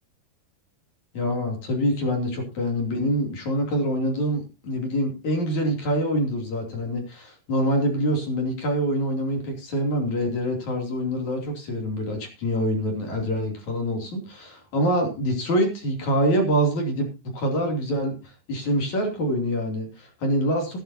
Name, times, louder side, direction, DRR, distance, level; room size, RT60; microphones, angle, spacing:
voice 1, 1.1-17.1 17.3-20.8, equal, 40° left, 3 dB, 3.7 m, -25 dB
16.5 x 12.5 x 2.9 m, 0.29 s
omnidirectional pair, 5.9 m